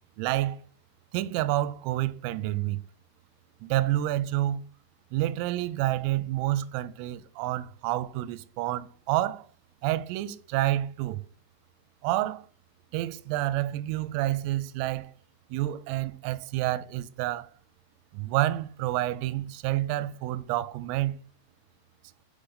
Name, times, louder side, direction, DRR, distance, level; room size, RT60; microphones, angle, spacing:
voice 1, 0.2-0.6 1.1-2.8 3.6-4.6 5.1-9.5 9.8-11.2 12.0-12.5 12.9-15.1 15.5-17.5 18.1-21.2, right 15 dB, 85° right, 3.2 m, -29 dB
8.2 x 3.3 x 3.9 m
omnidirectional pair, 5.9 m